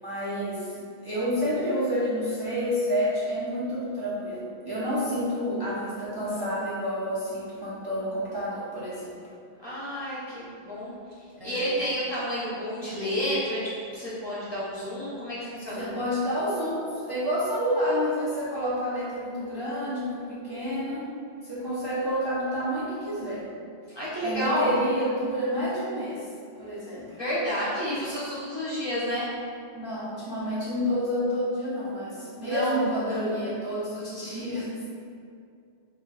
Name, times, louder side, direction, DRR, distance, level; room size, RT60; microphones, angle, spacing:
voice 1, 0.0-9.1 11.4-11.7 15.8-21.1 21.4-23.5 23.9-24.0 24.2-26.2 26.5-27.2 29.7-34.7, equal, 25° right, -11 dB, 0.6 m, -29 dB
voice 2, 9.6-10.9 11.4-15.9 23.9-24.7 27.2-29.3 32.5-33.2, equal, 25° left, -10 dB, 0.8 m, -30 dB
3.1 x 2.5 x 3.9 m, 2.4 s
omnidirectional pair, 1.1 m